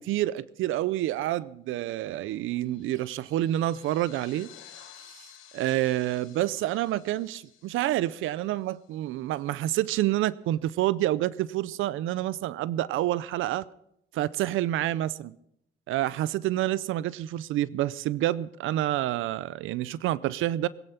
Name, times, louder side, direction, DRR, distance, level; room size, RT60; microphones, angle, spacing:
voice 1, 0.0-4.5 5.5-13.7 14.1-15.4 15.9-20.7, right 14 dB, 85° right, 0.6 m, -28 dB
sound 1, 2.3-9.2, left 11 dB, 85° left, 1.6 m, -54 dB
21.0 x 10.0 x 5.7 m
cardioid pair, 90°, 20 cm